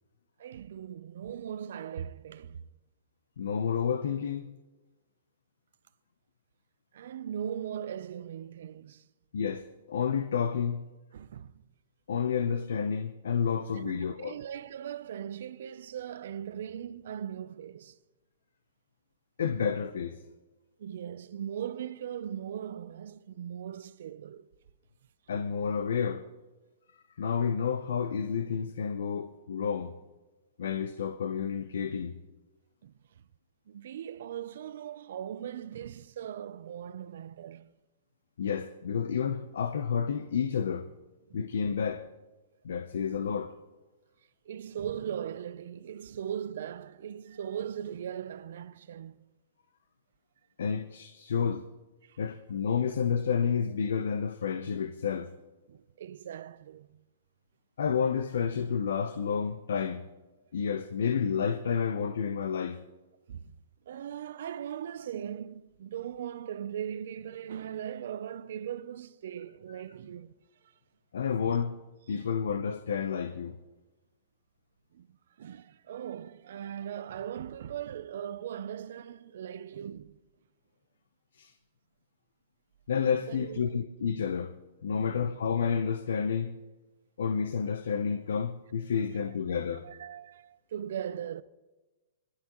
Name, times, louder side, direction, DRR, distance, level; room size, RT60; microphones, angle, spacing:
voice 1, 0.4-2.7 6.9-9.1 11.1-11.6 13.7-18.0 20.8-24.5 32.8-32.9 33.7-37.7 41.3-41.4 44.5-49.2 52.0-52.2 55.7-57.0 63.3-63.6 63.9-70.4 70.6-70.7 72.2-72.3 74.9-80.2 83.3-83.8 84.9-85.2 89.1-89.2 89.8-91.4, right 9 dB, 60° right, 0.5 m, -39 dB
voice 2, 3.4-4.6 9.3-10.9 12.1-14.4 19.4-20.2 25.3-26.2 27.2-29.9 30.6-32.2 38.4-40.9 41.3-42.0 42.6-43.5 50.6-51.7 52.2-55.3 57.8-60.0 60.5-62.8 71.1-71.8 72.1-73.6 81.3-81.5 82.9-84.5 84.8-86.6 87.2-89.8, left 6 dB, 85° left, 0.7 m, -30 dB
24.0 x 11.5 x 3.0 m
hypercardioid pair, 175°, 0 cm